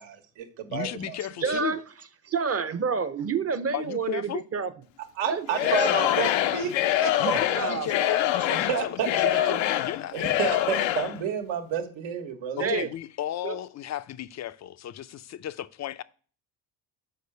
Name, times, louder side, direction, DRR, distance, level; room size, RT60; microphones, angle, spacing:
voice 1, 0.0-1.2 5.2-6.7 7.0-7.7 8.7-9.1 10.1-12.7, right 8 dB, 75° right, 1.4 m, -30 dB
voice 2, 0.7-1.7 3.7-4.4 7.2-10.2 12.5-16.0, left 11 dB, 35° left, 0.5 m, -34 dB
voice 3, 1.4-1.8 2.2-4.7 5.2-6.1 7.5-8.2 9.0-9.6 12.6-12.9 13.4-13.6, right 5 dB, 30° right, 0.8 m, -30 dB
Singing / Crowd, 5.5-11.2, left 13 dB, 75° left, 0.7 m, -25 dB
6.6 x 4.8 x 6.7 m
supercardioid pair, 85°, 46 cm